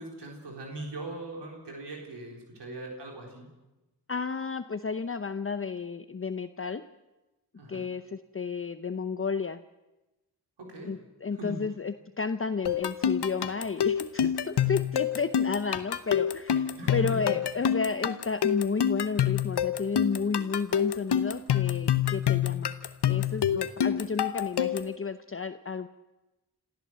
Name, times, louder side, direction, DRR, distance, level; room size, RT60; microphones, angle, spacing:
voice 1, 0.0-3.5 7.6-7.9 10.6-11.0 11.4-11.6 16.8-17.2, right 1 dB, 90° right, 0 dB, 4.2 m, -40 dB
voice 2, 4.1-6.8 7.7-9.6 10.8-22.7 23.1-25.9, left 5 dB, 30° left, 10 dB, 0.8 m, -32 dB
sound 1, 12.7-25.0, left 9 dB, 80° left, 1.0 m, -27 dB
27.0 x 13.5 x 7.5 m, 1.0 s
cardioid pair, 45°, 40 cm